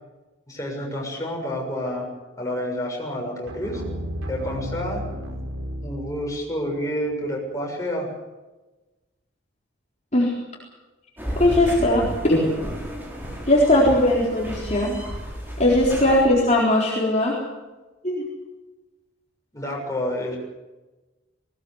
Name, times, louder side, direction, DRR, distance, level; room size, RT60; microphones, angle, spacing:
voice 1, 0.5-3.8 4.3-5.4 5.8-8.1 16.1-16.2 19.5-20.4, equal, 15° left, -1 dB, 6.8 m, -29 dB
sound 1, 3.5-6.6, equal, 90° right, 4.5 m, -33 dB
sound 2, 11.2-16.2, equal, 10° right, 5.7 m, -33 dB
voice 2, 11.4-12.5 13.5-15.0 15.6-17.4 18.0-18.2, left 1 dB, 35° left, -4 dB, 4.1 m, -19 dB
20.0 x 19.0 x 8.1 m, 1.1 s
head